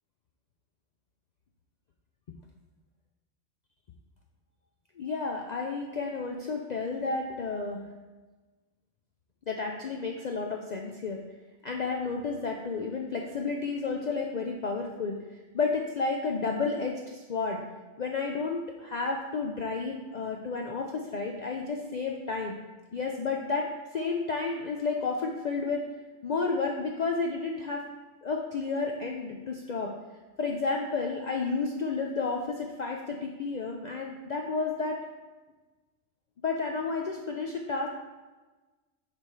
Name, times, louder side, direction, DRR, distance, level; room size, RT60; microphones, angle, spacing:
voice 1, 5.0-7.8 9.5-11.2 11.6-17.6 18.0-22.6 22.9-23.7 23.9-25.9 26.2-27.8 28.2-29.9 30.4-35.0 36.4-37.9, left 4 dB, 70° left, 2 dB, 0.4 m, -31 dB
6.8 x 3.5 x 4.6 m, 1.2 s
omnidirectional pair, 1.3 m